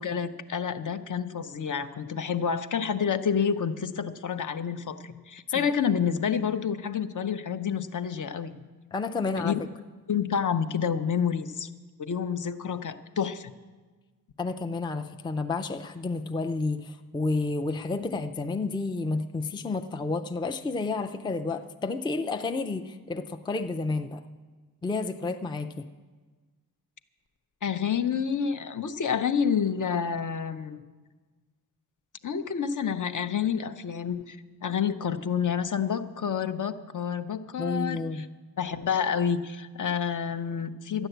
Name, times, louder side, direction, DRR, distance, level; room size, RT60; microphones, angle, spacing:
voice 1, 0.0-8.5 9.4-9.6 10.1-11.7 12.0-13.5 27.6-30.8 32.2-38.3 38.6-41.1, left 7 dB, 55° left, 10 dB, 0.7 m, -29 dB
voice 2, 8.9-9.5 14.4-24.2 24.8-25.8 37.6-38.2, left 3 dB, 15° left, 8 dB, 0.4 m, -30 dB
12.5 x 10.0 x 7.9 m, 1.4 s
wide cardioid pair, 155°, 37 cm